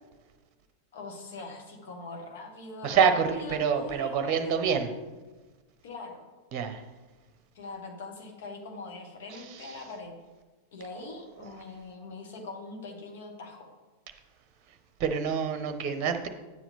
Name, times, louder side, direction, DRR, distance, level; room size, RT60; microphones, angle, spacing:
voice 1, 0.9-4.9 5.8-6.3 7.5-10.2 10.7-13.7, left 3 dB, 55° left, 2 dB, 1.6 m, -42 dB
voice 2, 2.8-4.9 6.5-6.8 15.0-16.3, right 6 dB, 40° right, 7 dB, 0.8 m, -26 dB
9.6 x 7.4 x 3.5 m, 1.2 s
figure-of-eight pair, 90°, 0 cm